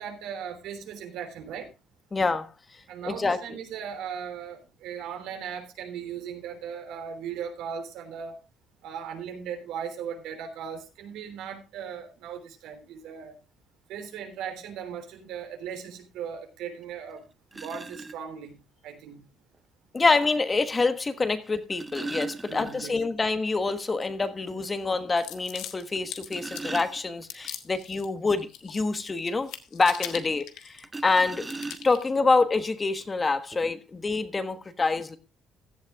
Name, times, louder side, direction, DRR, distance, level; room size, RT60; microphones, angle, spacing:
voice 1, 0.0-1.7 2.9-8.3 8.8-13.4 13.9-17.2 17.6-18.6 18.8-19.2 22.5-23.0, right 7 dB, 85° right, 3.5 m, -38 dB
voice 2, 2.1-2.5 3.0-3.6 19.9-31.5 31.8-35.2, left 3 dB, 25° left, 1.3 m, -26 dB
sound 1, 16.8-16.9 17.5-18.2 19.5-19.6 21.4-23.2 23.5-23.6 24.0-24.1 24.6-24.7 26.0-27.5 30.8-32.2 33.1-33.2 33.5-33.7, right 3 dB, 15° right, 0.6 m, -38 dB
sound 2, 25.2-26.9 27.3-28.1 28.4-29.0 29.3-31.1 31.4-32.0, left 11 dB, 85° left, 1.6 m, -40 dB
16.0 x 11.5 x 2.4 m
cardioid pair, 120°, 0 cm